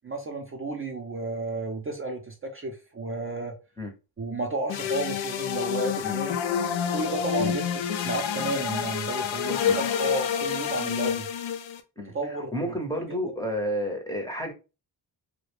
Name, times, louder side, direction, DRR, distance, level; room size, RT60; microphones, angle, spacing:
voice 1, 0.0-3.6 4.2-6.4 6.9-11.3 12.1-12.7, right 2 dB, 30° right, 0.5 m, -32 dB
sound 1, 4.7-11.8, left 8 dB, 80° left, 0.5 m, -28 dB
voice 2, 12.0-14.5, equal, 10° left, 0.6 m, -31 dB
2.3 x 2.2 x 3.2 m
cardioid pair, 70°, 45 cm